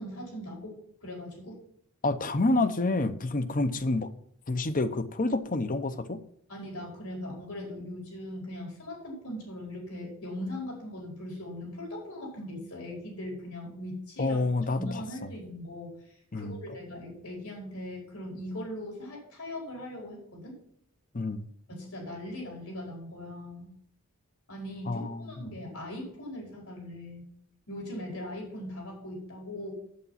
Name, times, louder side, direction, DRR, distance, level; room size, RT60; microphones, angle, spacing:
voice 1, 0.0-1.6 6.5-14.4 14.7-20.5 21.7-23.7 24.5-27.3 27.7-29.7, left 1 dB, 75° left, -1 dB, 4.9 m, -40 dB
voice 2, 2.0-4.1 4.5-6.2 14.2-15.0 16.3-16.6 21.1-21.5 24.9-25.4, left 2 dB, 40° left, 12 dB, 0.8 m, -28 dB
8.5 x 8.3 x 5.7 m, 0.68 s
head